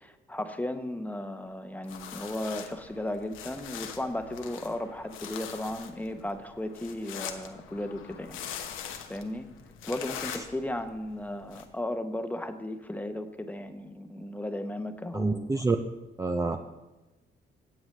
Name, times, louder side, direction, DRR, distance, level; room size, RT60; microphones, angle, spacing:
voice 1, 0.0-8.4 9.1-9.5 9.8-15.6, left 1 dB, 10° left, 7 dB, 0.9 m, -35 dB
sound 1, 1.8-11.6, left 8 dB, 90° left, 1.0 m, -43 dB
voice 2, 15.1-15.8 16.2-16.6, right 3 dB, 15° right, 6 dB, 0.5 m, -27 dB
17.5 x 7.9 x 3.3 m, 1.1 s
cardioid pair, 90°, 20 cm